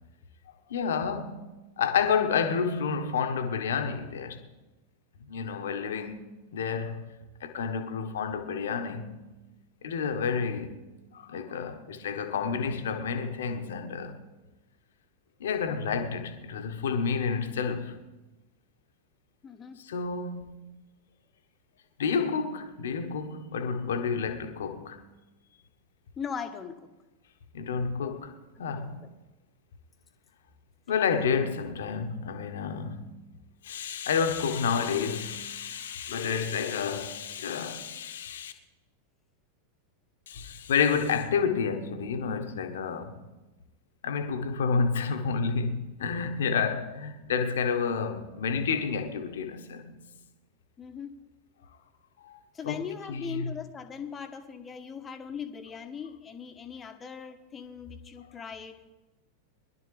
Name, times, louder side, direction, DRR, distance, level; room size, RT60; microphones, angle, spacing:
voice 1, 0.7-1.5 1.8-4.4 5.2-6.2 6.5-9.2 9.8-10.8 11.1-14.2 15.4-18.0 19.8-20.6 22.0-25.0 27.5-28.3 28.6-29.0 30.9-33.1 33.6-38.5 40.3-43.2 44.0-49.9 52.2-52.4 52.6-52.8 53.1-53.5, left 6 dB, 60° left, 1.2 m, -30 dB
voice 2, 19.4-19.8 26.2-26.9 28.0-28.1 28.6-28.7 29.0-29.1 50.8-51.1 52.5-58.8, left 6 dB, 20° left, 1.2 m, -39 dB
21.5 x 11.5 x 3.3 m
figure-of-eight pair, 90°, 0 cm